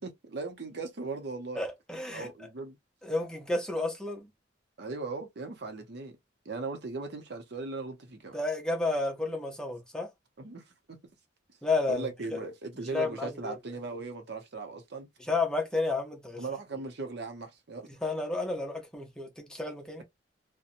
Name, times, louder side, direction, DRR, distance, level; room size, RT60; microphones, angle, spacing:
voice 1, 0.0-1.6 2.1-2.8 4.8-6.2 6.4-8.4 10.4-11.0 11.9-15.1 16.4-17.9, right 3 dB, 65° right, 0.7 m, -38 dB
voice 2, 1.6-2.3 3.0-4.3 8.3-10.1 11.6-12.4 12.9-13.6 15.2-16.4 18.0-20.0, left 3 dB, 5° left, 0.7 m, -31 dB
2.8 x 2.2 x 2.5 m
head